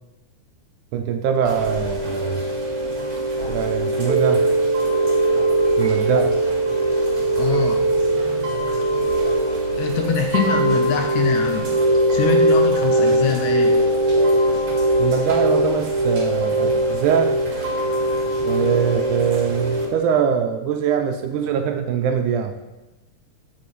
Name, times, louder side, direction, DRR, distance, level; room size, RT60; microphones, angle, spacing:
voice 1, 0.9-2.4 3.5-4.5 5.8-6.4 15.0-17.4 18.4-22.5, right 7 dB, 75° right, 6 dB, 2.0 m, -22 dB
Chime / Rain, 1.4-19.8, right 1 dB, 35° right, 1.7 m, -20 dB
voice 2, 7.4-7.8 9.8-11.7 12.1-13.8, left 7 dB, 75° left, 4 dB, 1.9 m, -24 dB
7.7 x 7.4 x 5.3 m, 1.1 s
omnidirectional pair, 3.8 m